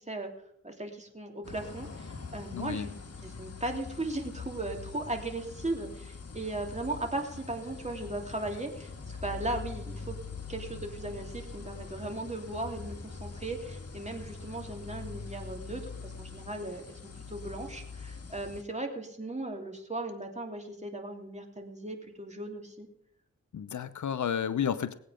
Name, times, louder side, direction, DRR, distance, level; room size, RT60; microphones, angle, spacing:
voice 1, 0.6-2.9 3.2-10.2 10.5-17.0 17.3-22.9, right 2 dB, 25° right, 2 dB, 3.0 m, -37 dB
sound 1, 1.4-18.6, left 4 dB, 55° left, 1.6 m, -43 dB
voice 2, 2.5-2.9 23.5-24.9, left 8 dB, 85° left, 13 dB, 0.7 m, -31 dB
19.5 x 8.6 x 5.1 m, 0.71 s
cardioid pair, 50°, 29 cm